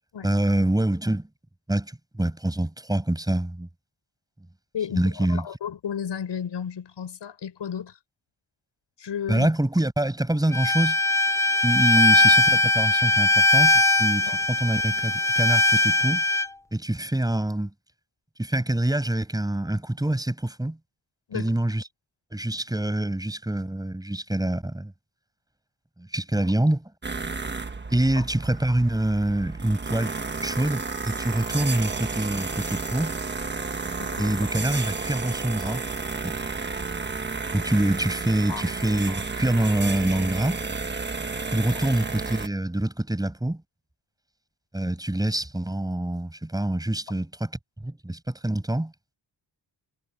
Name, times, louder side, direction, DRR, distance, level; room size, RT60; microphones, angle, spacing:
voice 1, 0.2-1.3 1.7-3.7 4.9-5.4 9.3-11.0 11.6-16.2 16.7-17.7 18.4-20.8 21.3-21.8 22.3-24.9 26.0-26.9 27.9-30.1 30.4-33.1 34.2-35.8 36.2-36.3 37.5-40.6 41.5-43.6 44.7-47.5 47.8-48.9, right 1 dB, 10° right, 6.7 m, -25 dB
voice 2, 4.7-8.0 9.0-9.5 14.3-14.4 21.3-21.5 28.2-28.3 34.0-34.4 38.5-38.6 39.1-39.2, left 8 dB, 70° left, 7.0 m, -33 dB
Bowed string instrument, 10.5-16.5, left 2 dB, 5° left, 0.5 m, -20 dB
sound 1, 27.0-42.5, right 4 dB, 25° right, 1.4 m, -32 dB
wide cardioid pair, 165°, 44 cm